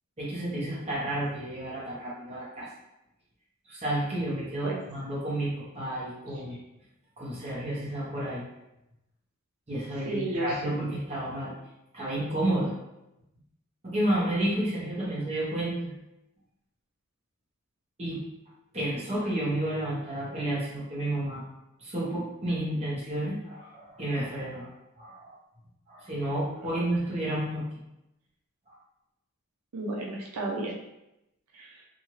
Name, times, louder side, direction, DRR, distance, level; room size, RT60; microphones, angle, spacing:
voice 1, 0.2-2.7 3.7-6.6 7.2-8.4 9.7-11.5 11.9-12.7 13.8-15.9 18.0-18.2 18.7-21.4 21.8-25.4 25.9-27.8 28.7-28.8, right 1 dB, 30° right, -6 dB, 1.0 m, -31 dB
voice 2, 10.1-10.5 29.7-30.7 31.5-31.8, right 2 dB, 80° right, -1 dB, 0.5 m, -33 dB
2.8 x 2.5 x 3.0 m, 0.89 s
head